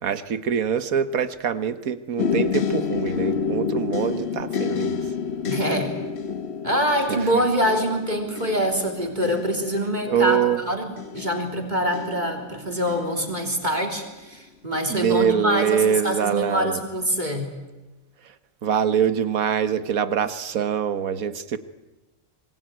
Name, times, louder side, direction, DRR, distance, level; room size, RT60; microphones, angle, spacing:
voice 1, 0.0-5.0 7.1-7.4 10.1-10.6 14.9-16.8 18.2-18.3 18.6-21.6, right 7 dB, 85° right, 12 dB, 1.6 m, -24 dB
sound 1, 2.2-14.0 14.7-15.2 15.6-15.8, left 6 dB, 55° left, 1.2 m, -30 dB
voice 2, 5.5-5.9 6.6-10.4 10.7-10.9 11.1-17.5, equal, 30° right, 3 dB, 3.6 m, -25 dB
25.5 x 20.5 x 9.1 m, 1.1 s
omnidirectional pair, 1.4 m